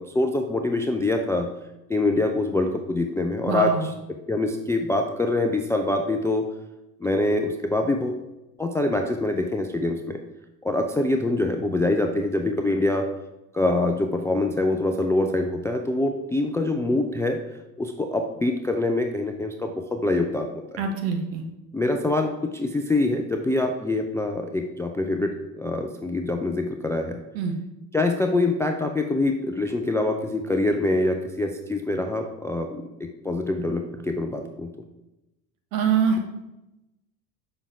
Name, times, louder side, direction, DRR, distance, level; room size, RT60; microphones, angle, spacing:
voice 1, 0.0-1.5 1.9-3.9 4.3-6.5 7.0-8.2 8.6-10.2 10.6-13.0 13.5-17.4 17.8-20.8 21.7-27.2 27.9-34.7, left 2 dB, 5° left, 4 dB, 0.4 m, -25 dB
voice 2, 3.5-3.9 20.8-21.4 27.3-27.5 35.7-36.4, right 6 dB, 60° right, 4 dB, 1.5 m, -24 dB
7.0 x 5.5 x 4.7 m, 0.95 s
figure-of-eight pair, 70°, 48 cm